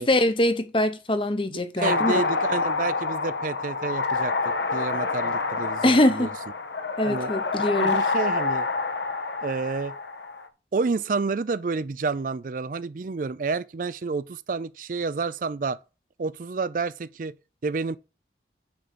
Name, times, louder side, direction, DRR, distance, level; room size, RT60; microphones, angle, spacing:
voice 1, 0.0-2.1 5.8-6.3 7.0-8.0, left 1 dB, 30° left, 0.8 m, -23 dB
voice 2, 1.5-4.3 4.7-6.3 7.0-7.3 7.8-8.7 9.4-9.9 10.7-15.8 16.2-17.4 17.6-18.0, right 4 dB, 45° right, 0.4 m, -29 dB
sound 1, 1.8-10.5, left 4 dB, 80° left, 1.1 m, -27 dB
10.0 x 3.9 x 6.7 m
head